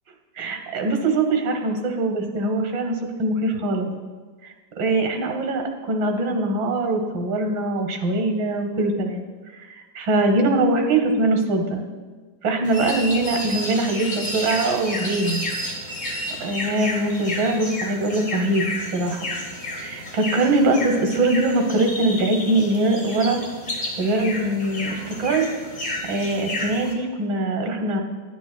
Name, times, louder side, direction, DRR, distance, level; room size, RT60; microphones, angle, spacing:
voice 1, 0.4-3.9 4.4-9.2 9.5-11.8 12.4-15.4 16.4-18.7 18.9-19.2 19.7-23.4 24.0-25.4 26.1-28.0, right 2 dB, 85° right, 4 dB, 1.9 m, -22 dB
sound 1, 12.6-26.9, left 1 dB, 25° left, 1.1 m, -31 dB
12.0 x 9.2 x 2.2 m, 1.4 s
omnidirectional pair, 2.0 m